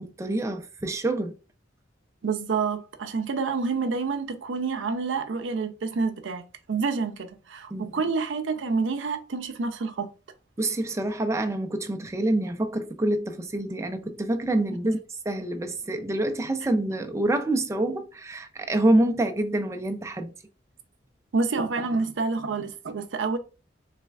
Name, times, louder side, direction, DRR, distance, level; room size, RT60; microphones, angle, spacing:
voice 1, 0.0-1.3 7.7-8.0 10.6-15.0 15.3-20.3, right 1 dB, 15° right, 0.4 m, -26 dB
voice 2, 2.2-10.1 21.3-23.4, right 4 dB, 85° right, 0.5 m, -28 dB
4.1 x 3.2 x 2.3 m
head